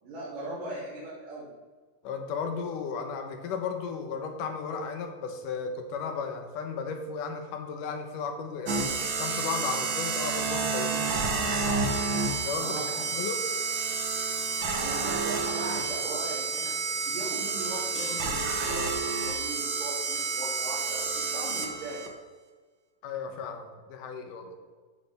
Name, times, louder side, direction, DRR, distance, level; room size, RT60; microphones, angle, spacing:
voice 1, 0.0-1.5 12.6-13.1 14.7-16.8 17.1-22.1, right 2 dB, 85° right, -9 dB, 4.2 m, -39 dB
voice 2, 2.0-11.8 12.1-13.4 23.0-24.5, left 5 dB, 80° left, 5 dB, 2.6 m, -35 dB
sound 1, 8.7-22.1, right 4 dB, 65° right, 1.2 m, -30 dB
sound 2, 17.9-19.3, left 3 dB, 50° left, 1.4 m, -45 dB
14.0 x 8.2 x 3.5 m, 1.4 s
omnidirectional pair, 3.7 m